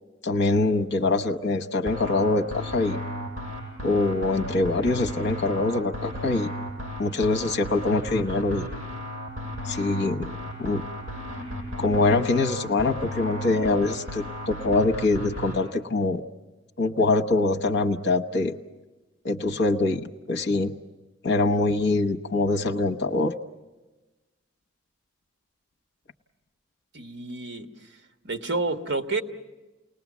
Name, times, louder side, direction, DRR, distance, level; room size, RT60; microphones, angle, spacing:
voice 1, 0.2-3.0 3.8-6.5 7.0-8.7 9.6-10.8 11.8-16.2 16.8-18.6 19.2-20.7 21.2-23.3, left 2 dB, 55° left, 4 dB, 1.0 m, -24 dB
sound 1, 1.9-15.6, equal, 40° right, 7.2 m, -34 dB
voice 2, 26.9-27.7 28.2-29.2, right 3 dB, 55° right, 6 dB, 1.3 m, -29 dB
29.5 x 19.5 x 7.3 m, 1.1 s
head